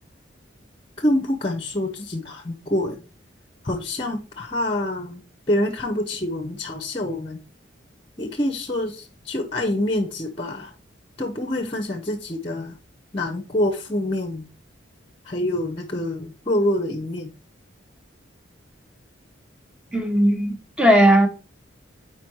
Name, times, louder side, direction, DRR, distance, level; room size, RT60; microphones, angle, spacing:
voice 1, 1.0-3.0 3.6-5.2 5.5-7.4 8.2-10.7 11.2-12.8 13.1-14.5 15.2-17.3, left 1 dB, 30° left, 0.7 m, -26 dB
voice 2, 19.9-21.3, right 1 dB, 5° right, 0.9 m, -17 dB
5.0 x 4.6 x 4.5 m
head